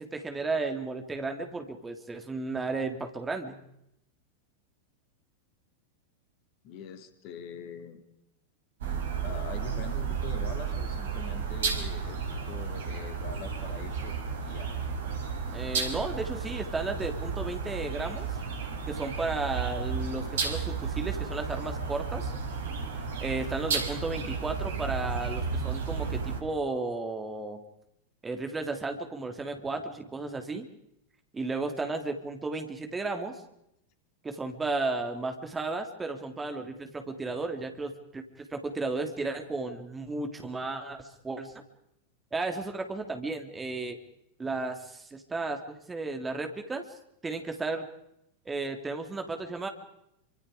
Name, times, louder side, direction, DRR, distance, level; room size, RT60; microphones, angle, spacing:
voice 1, 0.0-3.6 15.5-18.3 18.9-22.3 23.2-27.6 28.2-30.7 31.3-33.4 34.2-41.5 42.3-44.0 44.4-46.8 47.2-47.9 48.4-49.7, right 3 dB, 15° right, 5 dB, 3.2 m, -34 dB
voice 2, 6.6-8.0 9.2-12.2 12.5-14.1 14.4-14.7, left 7 dB, 45° left, 8 dB, 3.1 m, -43 dB
sound 1, 8.8-26.4, right 5 dB, 60° right, 4.3 m, -33 dB
28.0 x 26.0 x 5.1 m, 0.81 s
figure-of-eight pair, 90°, 0 cm